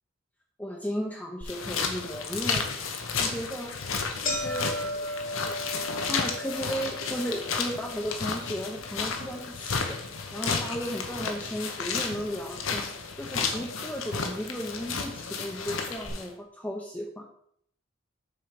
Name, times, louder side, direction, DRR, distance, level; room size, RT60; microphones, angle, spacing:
voice 1, 0.6-2.6 3.2-3.7 4.2-5.1 5.4-5.5 6.0-10.0 10.3-12.8 13.2-17.3, equal, 5° left, -1 dB, 0.7 m, -35 dB
sound 1, 1.4-1.5 2.0-2.1 3.0-3.2 3.5-3.6 3.9-12.1 12.3-13.1 13.9-14.0 14.9-15.0 15.3-15.4 16.0-16.1, left 1 dB, 40° left, 1.4 m, -38 dB
sound 2, 1.5-16.3, left 5 dB, 80° left, 1.0 m, -32 dB
6.8 x 4.4 x 5.2 m, 0.68 s
head